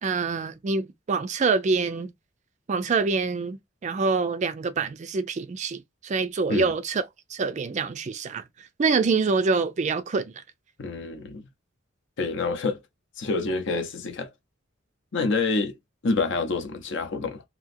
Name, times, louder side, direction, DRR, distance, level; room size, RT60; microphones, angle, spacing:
voice 1, 0.0-2.1 2.7-7.0 7.3-10.3, right 4 dB, 35° right, 0.3 m, -26 dB
voice 2, 10.8-11.5 12.2-12.8 13.2-14.3 15.1-15.8 16.0-17.4, left 3 dB, 60° left, 0.6 m, -27 dB
2.8 x 2.7 x 2.5 m
head